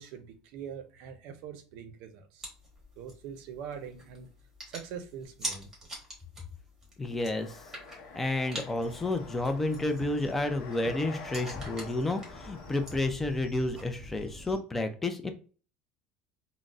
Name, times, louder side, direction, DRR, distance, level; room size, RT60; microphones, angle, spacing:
voice 1, 0.0-2.5 3.0-4.3 4.7-5.7, right 7 dB, 65° right, 0.5 m, -43 dB
sound 1, 2.4-14.2, right 1 dB, 15° right, 1.1 m, -46 dB
voice 2, 7.0-7.6 8.1-15.3, left 2 dB, 10° left, 0.4 m, -31 dB
sound 2, 7.3-13.1, left 4 dB, 60° left, 0.7 m, -47 dB
sound 3, 8.8-14.6, left 1 dB, 35° left, 1.1 m, -50 dB
3.7 x 2.0 x 2.3 m
cardioid pair, 155°, 2 cm